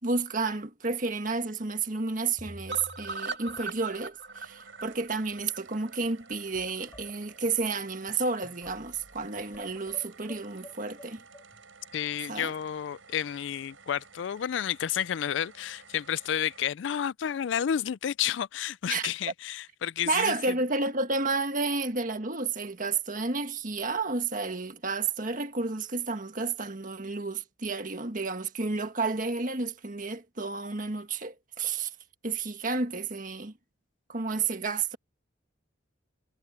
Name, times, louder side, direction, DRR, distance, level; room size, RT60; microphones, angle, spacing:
voice 1, 0.0-11.2 12.3-12.5 18.9-19.1 20.0-31.9 32.2-33.5 34.1-35.0, right 4 dB, 40° right, 1.7 m, -31 dB
sound 1, 1.3-1.5 1.8-1.9 2.4-3.2 3.5-4.0 4.8-4.9 5.2-5.5 6.0-11.6, equal, 15° left, 7.8 m, -51 dB
sound 2, 2.7-6.7 7.0-7.1 7.4-7.5 7.8-7.9, right 3 dB, 60° right, 2.5 m, -40 dB
sound 3, 4.3-16.6, right 5 dB, 85° right, 7.7 m, -54 dB
voice 2, 11.9-20.4, left 9 dB, 70° left, 0.4 m, -31 dB
head